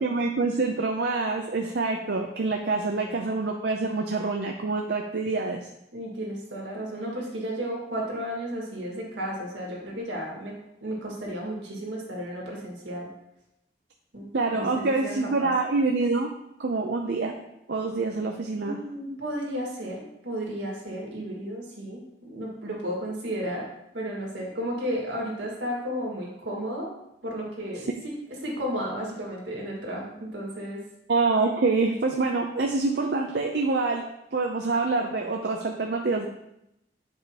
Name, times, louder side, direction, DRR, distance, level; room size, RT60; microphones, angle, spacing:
voice 1, 0.0-5.7 14.3-16.3 16.6-17.3 17.7-18.8 31.1-34.0 34.3-36.3, right 3 dB, 65° right, 2 dB, 0.5 m, -26 dB
voice 2, 2.8-3.2 5.9-10.5 10.8-13.1 14.1-15.5 18.6-23.6 23.9-26.9 27.2-28.1 28.4-30.8, equal, 80° right, -3 dB, 1.9 m, -33 dB
8.1 x 4.9 x 2.9 m, 0.82 s
head